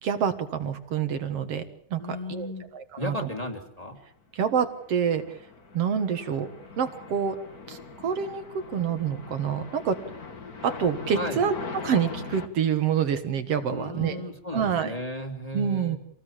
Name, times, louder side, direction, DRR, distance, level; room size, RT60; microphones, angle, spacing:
voice 1, 0.0-1.6 1.9-2.0 2.3-2.5 2.7-3.3 4.3-5.4 5.7-6.5 6.8-7.4 7.7-8.4 8.7-10.0 10.6-11.6 11.8-14.2 14.5-14.9 15.5-16.0, right 7 dB, 55° right, 9 dB, 2.4 m, -27 dB
voice 2, 2.0-2.7 3.0-4.0 11.1-11.4 13.7-16.0, left 1 dB, 15° left, 3 dB, 2.5 m, -35 dB
sound 1, 4.7-12.5, left 4 dB, 35° left, 2.0 m, -41 dB
26.5 x 19.0 x 7.4 m, 0.68 s
omnidirectional pair, 3.4 m